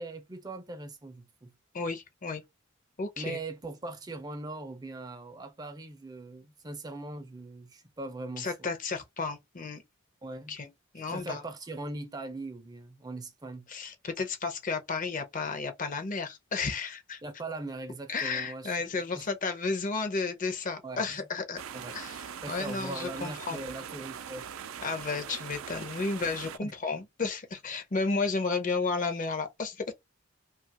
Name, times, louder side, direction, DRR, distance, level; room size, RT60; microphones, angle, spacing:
voice 1, 0.0-1.5 3.2-8.5 10.2-10.6 11.1-13.7 17.2-18.8 19.1-19.3 20.8-21.2 21.7-22.0 22.4-24.5 26.6-26.7, right 2 dB, 20° right, 0.4 m, -40 dB
voice 2, 1.7-2.4 3.0-3.4 8.4-9.8 10.5-10.7 10.9-11.4 13.7-17.2 18.1-21.6 21.9-23.6 24.8-29.9, left 4 dB, 40° left, 0.6 m, -32 dB
sound 1, 21.6-26.6, right 8 dB, 85° right, 0.4 m, -42 dB
2.8 x 2.3 x 2.8 m
head